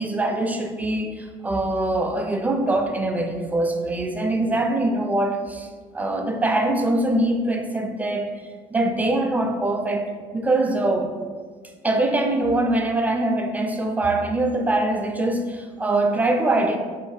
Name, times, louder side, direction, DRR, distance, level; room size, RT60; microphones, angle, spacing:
voice 1, 0.0-5.7 5.9-8.3 8.7-11.1 11.8-16.8, right 2 dB, 10° right, 4 dB, 0.4 m, -23 dB
2.6 x 2.2 x 4.0 m, 1.5 s
hypercardioid pair, 65°, 17 cm